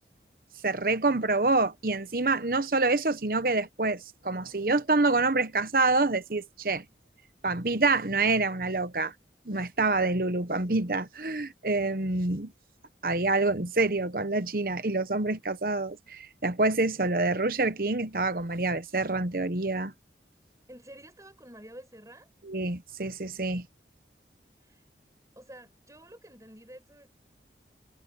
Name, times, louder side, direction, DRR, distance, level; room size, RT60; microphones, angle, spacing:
voice 1, 0.6-6.8 7.4-9.1 9.5-12.5 13.0-19.9 22.5-23.7, right 3 dB, 55° right, 1.1 m, -27 dB
voice 2, 20.7-22.3 24.6-24.9 25.4-27.1, right 1 dB, 20° right, 7.6 m, -49 dB
head